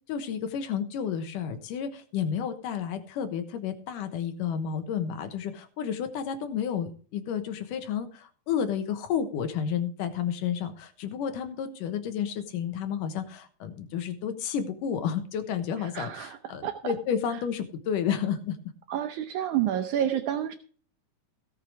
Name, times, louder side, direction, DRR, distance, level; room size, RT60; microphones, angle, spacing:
voice 1, 0.1-18.6, left 8 dB, 80° left, 9 dB, 2.7 m, -31 dB
voice 2, 15.8-16.8 18.9-20.5, right 10 dB, 75° right, 7 dB, 2.2 m, -29 dB
17.0 x 6.8 x 4.8 m, 0.42 s
omnidirectional pair, 3.7 m